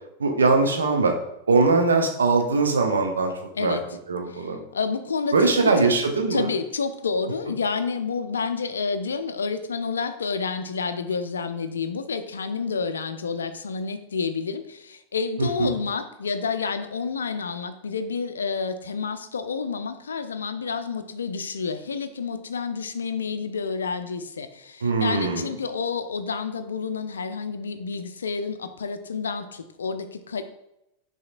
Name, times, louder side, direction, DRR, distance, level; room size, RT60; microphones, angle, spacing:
voice 1, 0.2-1.1 1.5-3.3 3.6-3.8 4.1-4.6 5.3-6.5 15.4-15.7 24.8-25.5, right 3 dB, 70° right, 4 dB, 0.6 m, -21 dB
voice 2, 4.3-5.9 6.3-30.4, left 5 dB, 70° left, 10 dB, 0.3 m, -29 dB
5.8 x 2.8 x 2.4 m, 0.83 s
figure-of-eight pair, 90°, 0 cm